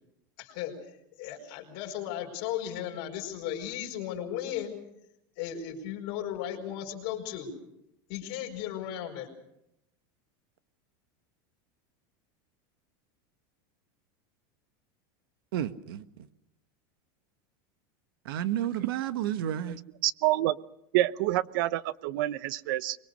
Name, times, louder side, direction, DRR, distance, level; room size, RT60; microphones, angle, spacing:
voice 1, 0.4-0.7 1.2-4.8 5.4-7.5 8.1-9.3, left 10 dB, 55° left, 0 dB, 4.9 m, -35 dB
voice 2, 15.5-16.0 18.2-19.8, right 11 dB, 85° right, 12 dB, 1.6 m, -31 dB
voice 3, 20.0-20.6 20.9-23.0, right 15 dB, 65° right, 18 dB, 0.9 m, -27 dB
24.5 x 22.5 x 6.6 m, 0.81 s
supercardioid pair, 165°, 12 cm